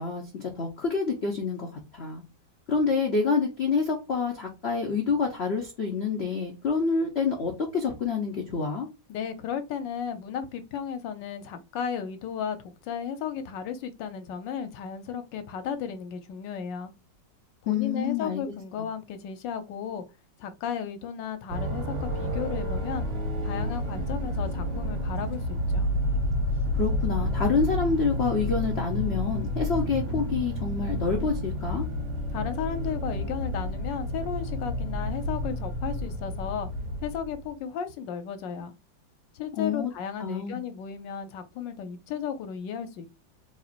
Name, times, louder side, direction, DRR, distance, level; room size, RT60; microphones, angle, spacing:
voice 1, 0.0-1.7 1.9-2.2 2.7-8.9 17.7-18.4 26.7-31.8 39.6-39.9 40.2-40.6, left 5 dB, 55° left, 0.7 m, -27 dB
voice 2, 9.1-16.9 17.6-20.0 20.4-23.1 23.4-25.9 32.3-36.7 37.0-38.7 39.3-43.1, left 7 dB, 80° left, 1.3 m, -34 dB
sound 1, 21.5-37.5, equal, 45° right, 1.1 m, -30 dB
4.3 x 3.0 x 2.5 m
omnidirectional pair, 2.0 m